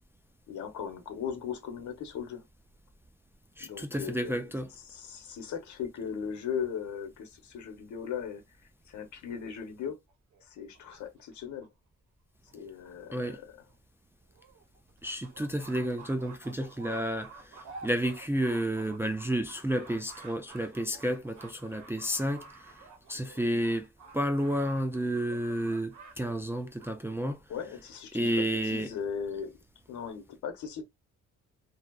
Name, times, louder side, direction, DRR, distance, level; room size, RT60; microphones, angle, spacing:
voice 1, 0.5-2.4 3.6-4.4 4.9-8.4 8.9-10.0 10.4-11.7 12.5-13.4 27.5-29.6 29.9-30.8, left 7 dB, 70° left, 1.0 m, -38 dB
voice 2, 3.6-4.7 13.1-13.4 15.0-22.8 23.1-23.9 24.1-27.4 28.1-28.9, right 1 dB, 10° right, 0.3 m, -31 dB
sound 1, 10.1-11.7 12.5-12.6 12.8-12.9 13.3-13.4 13.7-13.8 14.3-26.2 26.4-26.9, right 4 dB, 70° right, 0.9 m, -50 dB
2.6 x 2.3 x 2.3 m
cardioid pair, 90°, 30 cm